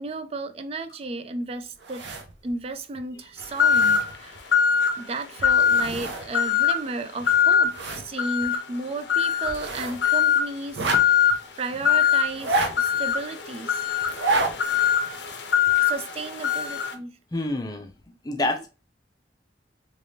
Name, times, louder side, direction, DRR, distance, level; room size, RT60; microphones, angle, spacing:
voice 1, 0.0-2.0 2.4-4.6 5.0-13.8 15.8-17.1 18.4-18.6, right 3 dB, 35° right, 9 dB, 0.3 m, -34 dB
sound 1, 1.8-2.5 2.9-3.1 3.4-4.4 5.4-6.3 6.6-6.7 7.2-8.1 8.4-8.5 9.4-10.0 10.7-11.3 12.3-13.1 14.0-14.6 14.9-15.0, right 2 dB, 85° right, 0.7 m, -29 dB
sound 2, 3.6-4.1 4.5-5.0 5.4-5.9 6.3-6.8 7.3-7.7 8.2-8.6 9.1-9.6 10.0-10.5 10.9-11.4 11.8-12.2 12.8-16.9, left 8 dB, 75° left, 0.5 m, -21 dB
voice 2, 17.3-17.9 18.2-18.7, left 2 dB, 20° left, 4 dB, 0.5 m, -27 dB
3.3 x 3.0 x 2.7 m, 0.32 s
head